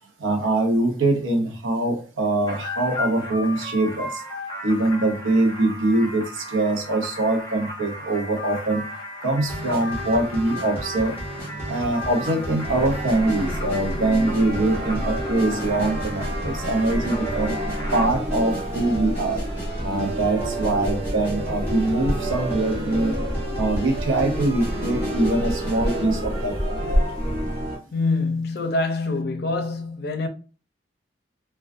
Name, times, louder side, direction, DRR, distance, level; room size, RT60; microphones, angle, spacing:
voice 1, 0.2-4.2 4.6-8.8 9.2-11.2 11.7-17.6 17.9-19.4 19.8-23.2 23.5-27.0, right 2 dB, 80° right, 0.5 m, -23 dB
sound 1, 2.5-18.1, left 1 dB, 25° left, 0.7 m, -35 dB
sound 2, 9.4-26.0, right 1 dB, 15° right, 0.9 m, -35 dB
sound 3, 12.6-27.8, equal, 45° right, 1.0 m, -28 dB
voice 2, 27.9-30.3, left 3 dB, 55° left, 0.5 m, -25 dB
2.4 x 2.2 x 2.4 m
head